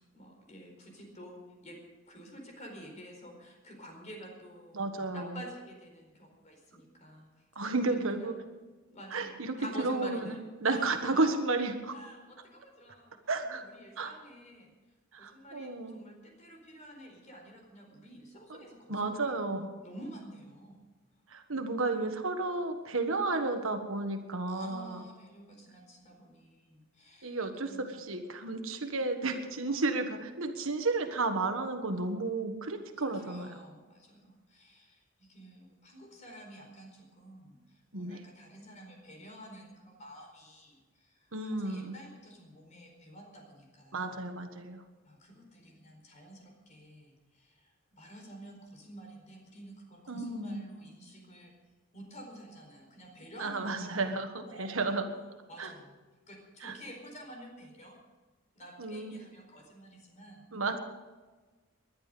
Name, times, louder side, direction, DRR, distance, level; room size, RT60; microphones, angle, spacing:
voice 1, 0.1-1.8 2.1-7.4 7.9-8.3 8.9-10.4 10.7-10.8 11.1-11.2 11.9-14.7 15.2-19.3 19.8-20.8 21.5-21.9 24.5-27.4 27.7-28.1 29.7-29.8 33.0-44.2 45.0-51.5 51.9-54.1 54.5-54.8 55.5-56.0 56.3-58.0 58.6-60.4, equal, 35° left, 2 dB, 4.4 m, -50 dB
voice 2, 4.7-5.4 7.5-8.3 9.1-10.3 10.6-12.0 13.3-13.6 14.0-14.1 15.1-16.0 18.9-19.7 21.3-25.0 27.2-33.5 37.9-38.2 41.3-42.0 43.9-44.8 50.1-50.6 53.4-55.0 55.6-55.7 56.6-56.8 58.8-59.2 60.5-60.8, right 3 dB, 70° right, 6 dB, 1.5 m, -32 dB
20.5 x 11.0 x 5.2 m, 1.3 s
head